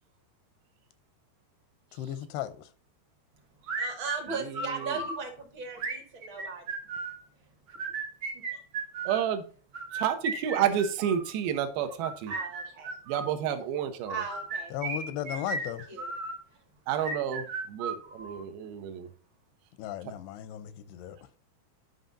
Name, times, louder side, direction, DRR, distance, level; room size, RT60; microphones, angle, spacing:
voice 1, 1.9-2.7 14.7-15.9 19.8-21.2, left 12 dB, 85° left, 2.7 m, -36 dB
voice 2, 3.6-6.6 8.5-8.6 12.3-12.9 14.1-14.8 15.3-15.5 15.9-16.1, right 5 dB, 40° right, 2.1 m, -37 dB
sound 1, 3.7-5.2 5.8-7.2 7.7-9.2 9.7-11.3 11.9-13.3 14.1-16.4 16.9-18.4, right 3 dB, 55° right, 1.4 m, -35 dB
voice 3, 4.4-5.0 9.1-9.5 9.9-12.3 13.1-14.2 16.9-19.1, right 9 dB, 75° right, 2.7 m, -30 dB
11.5 x 5.6 x 2.7 m
omnidirectional pair, 4.6 m